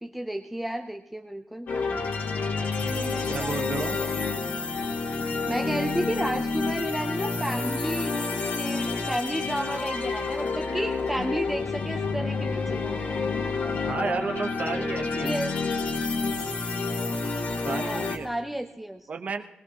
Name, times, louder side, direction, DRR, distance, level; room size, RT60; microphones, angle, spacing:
voice 1, 0.0-1.7 3.0-3.6 3.9-4.6 5.2-13.3 14.7-15.6 17.7-19.0, right 1 dB, 5° right, 4 dB, 0.6 m, -33 dB
sound 1, 1.7-18.2, left 4 dB, 65° left, 1.9 m, -29 dB
voice 2, 2.8-4.1 13.9-15.4 17.6-18.3 19.1-19.4, right 4 dB, 45° right, 5 dB, 0.9 m, -32 dB
21.0 x 19.0 x 2.9 m, 1.0 s
wide cardioid pair, 115°, 3 cm